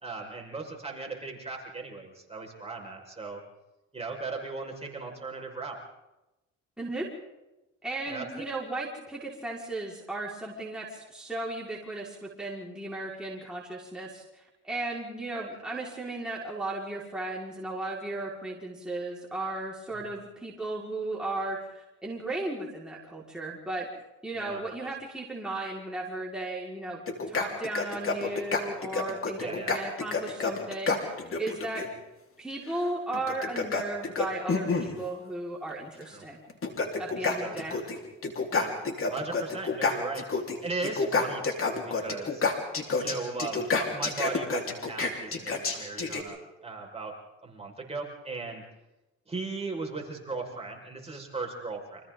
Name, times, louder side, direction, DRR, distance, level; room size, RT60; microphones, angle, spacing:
voice 1, 0.0-3.4 3.9-5.8 8.1-8.5 15.3-15.5 19.9-20.1 24.4-24.6 29.4-29.7 36.1-36.3 37.2-37.8 38.5-38.7 39.1-40.3 40.6-42.4 43.0-47.1 47.4-48.6 49.3-52.0, right 3 dB, 20° right, 0 dB, 5.5 m, -37 dB
voice 2, 6.8-7.1 7.8-21.7 22.0-23.9 24.2-27.0 27.3-31.8 32.4-36.4 37.0-37.7, right 2 dB, 5° right, -5 dB, 4.9 m, -35 dB
sound 1, 27.1-31.9 33.1-35.0 36.0-36.1 36.5-38.0 38.2-40.6 40.8-46.2, left 4 dB, 45° left, 4.1 m, -29 dB
30.0 x 26.0 x 3.9 m, 0.99 s
cardioid pair, 90°, 30 cm